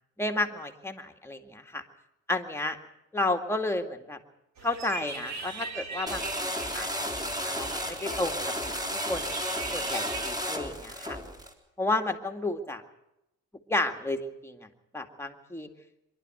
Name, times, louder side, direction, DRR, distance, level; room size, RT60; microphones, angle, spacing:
voice 1, 0.2-1.8 2.3-2.8 3.1-4.2 4.6-7.1 7.4-8.4 8.7-9.4 9.7-11.2 11.8-12.8 13.7-14.7 14.9-15.7, left 2 dB, 10° left, 4 dB, 2.2 m, -32 dB
sound 1, 4.6-10.3, right 4 dB, 65° right, 3.2 m, -40 dB
sound 2, 6.1-11.5, equal, 15° right, 3.7 m, -33 dB
24.0 x 12.0 x 9.1 m, 0.87 s
cardioid pair, 90°, 30 cm